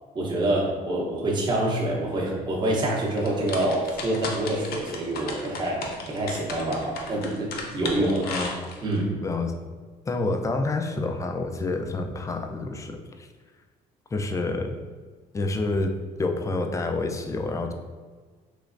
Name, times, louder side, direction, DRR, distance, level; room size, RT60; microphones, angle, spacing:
voice 1, 0.1-8.3 8.8-9.1, right 1 dB, 25° right, -4 dB, 0.7 m, -26 dB
sound 1, 3.2-9.0, left 3 dB, 60° left, 0.6 m, -35 dB
voice 2, 8.2-8.7 9.2-9.5 10.1-13.3 14.1-14.8 15.3-15.9 16.2-17.7, left 2 dB, 20° left, 5 dB, 0.3 m, -28 dB
3.2 x 3.0 x 2.5 m, 1.5 s
cardioid pair, 110°, 17 cm